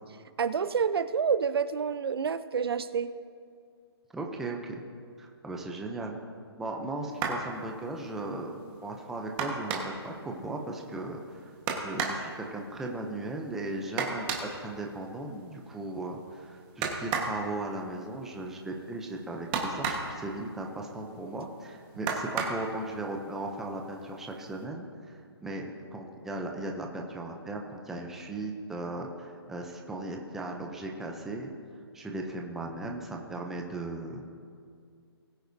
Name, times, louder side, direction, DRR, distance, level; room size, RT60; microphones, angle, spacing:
voice 1, 0.4-3.1, right 6 dB, 65° right, 13 dB, 0.6 m, -28 dB
voice 2, 4.1-4.8 5.2-6.2 6.6-8.6 8.8-31.5 31.9-34.3, right 2 dB, 5° right, 1 dB, 0.5 m, -37 dB
sound 1, 7.1-7.5 9.4-10.1 11.7-12.3 14.0-14.5 16.8-17.4 19.5-20.2 22.1-22.7 23.8-23.9 24.3-24.5, right 5 dB, 20° right, 1.3 m, -31 dB
20.5 x 9.5 x 2.7 m, 2.2 s
hypercardioid pair, 165°, 14 cm